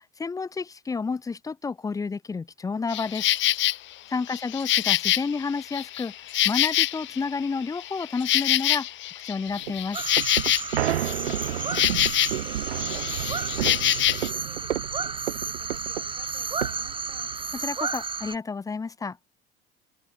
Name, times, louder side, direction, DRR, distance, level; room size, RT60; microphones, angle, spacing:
voice 1, 0.0-3.3 4.1-6.1 6.4-8.9 9.2-10.0 17.6-19.2, left 4 dB, 10° left, 0.5 m, -30 dB
Insect, 2.9-3.8 4.3-7.3 7.6-12.5 12.8-14.3, left 14 dB, 35° left, 1.0 m, -25 dB
voice 2, 4.0-4.4 10.7-12.0 12.3-17.3, left 1 dB, 90° left, 6.7 m, -56 dB
sound 1, 9.5-17.7, right 12 dB, 80° right, 0.5 m, -31 dB
sound 2, 9.9-18.4, right 4 dB, 15° right, 1.6 m, -32 dB
open air
figure-of-eight pair, 65°, 31 cm